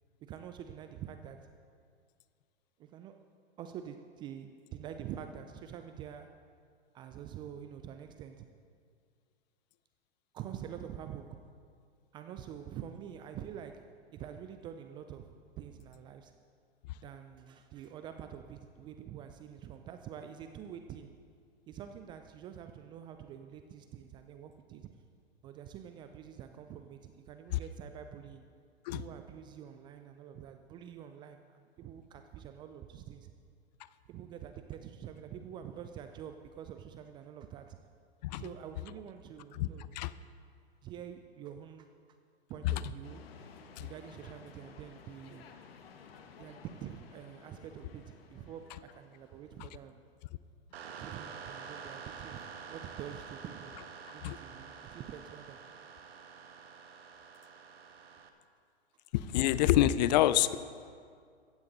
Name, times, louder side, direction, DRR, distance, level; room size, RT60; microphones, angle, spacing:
voice 1, 0.2-1.5 2.8-3.3 3.6-6.4 6.9-8.5 10.3-11.5 12.1-16.4 17.0-21.2 21.7-25.0 25.4-28.5 28.9-33.3 34.1-37.8 38.3-39.9 40.8-41.9 42.5-43.2 43.8-45.5 46.4-50.0 51.0-53.8 54.1-55.6, right 9 dB, 15° right, 8 dB, 0.3 m, -46 dB
sound 1, 43.0-50.1, left 6 dB, 65° left, 1.4 m, -55 dB
sound 2, 50.7-58.3, right 6 dB, 65° right, 1.4 m, -48 dB
voice 2, 59.1-60.6, left 13 dB, 40° left, 16 dB, 0.5 m, -26 dB
15.5 x 15.0 x 3.9 m, 2.2 s
hypercardioid pair, 110°, 32 cm